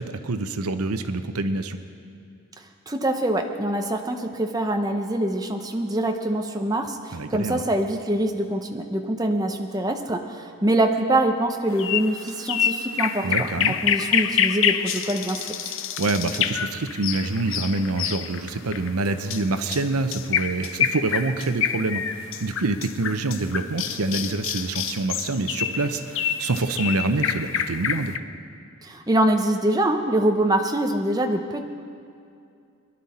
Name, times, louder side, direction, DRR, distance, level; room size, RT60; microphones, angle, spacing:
voice 1, 0.0-1.8 7.1-7.6 13.2-13.8 16.0-28.2, right 3 dB, 85° right, 9 dB, 0.8 m, -26 dB
voice 2, 2.9-15.7 28.8-31.6, right 1 dB, 15° right, 4 dB, 0.7 m, -24 dB
sound 1, 11.8-28.2, left 8 dB, 60° left, 0.5 m, -27 dB
22.5 x 11.0 x 4.2 m, 2.5 s
head